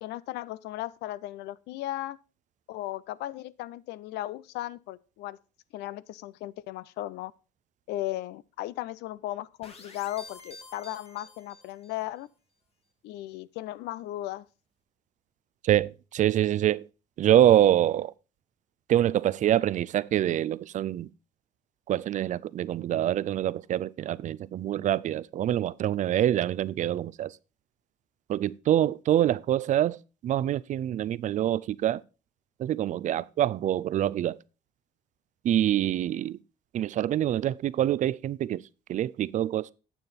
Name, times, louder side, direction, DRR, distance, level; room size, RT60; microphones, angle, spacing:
voice 1, 0.0-2.2 2.7-5.4 5.7-7.3 7.9-12.3 13.0-14.5 33.0-33.2, left 15 dB, 85° left, 0.5 m, -36 dB
sound 1, 9.6-12.1, left 2 dB, 35° left, 1.7 m, -49 dB
voice 2, 15.6-16.9 17.2-18.1 18.9-21.1 21.9-27.4 28.3-30.0 30.2-32.0 32.6-34.4 35.4-36.4 36.7-38.6 38.9-39.7, right 12 dB, 50° right, 0.4 m, -25 dB
9.3 x 7.2 x 4.1 m
cardioid pair, 110°, 17 cm